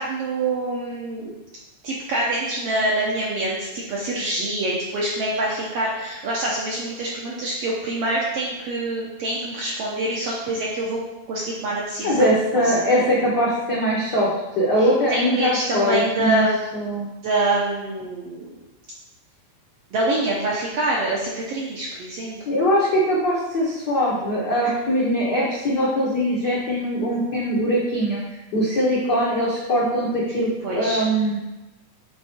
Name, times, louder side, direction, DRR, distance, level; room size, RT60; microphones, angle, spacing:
voice 1, 0.0-1.3 1.8-11.0 11.3-12.3 12.5-13.0 14.8-16.7 17.2-18.5 19.9-22.4 24.6-24.7 30.6-31.0, right 1 dB, 70° right, -4 dB, 1.5 m, -25 dB
voice 2, 12.0-14.3 14.6-16.4 16.7-17.1 22.5-28.2 28.5-31.4, equal, 70° left, -6 dB, 1.0 m, -21 dB
8.1 x 3.6 x 4.3 m, 1.0 s
omnidirectional pair, 3.7 m